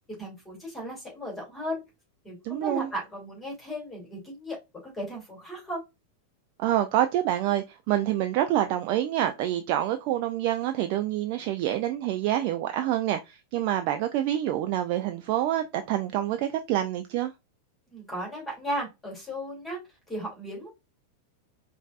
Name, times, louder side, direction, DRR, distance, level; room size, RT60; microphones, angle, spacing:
voice 1, 0.2-1.8 2.2-4.6 4.8-5.8 17.9-19.8 20.1-20.7, equal, 15° left, 2.4 m, -35 dB
voice 2, 2.4-2.9 6.6-17.3, right 12 dB, 45° right, 0.4 m, -27 dB
5.1 x 2.6 x 2.3 m
figure-of-eight pair, 90°, 0 cm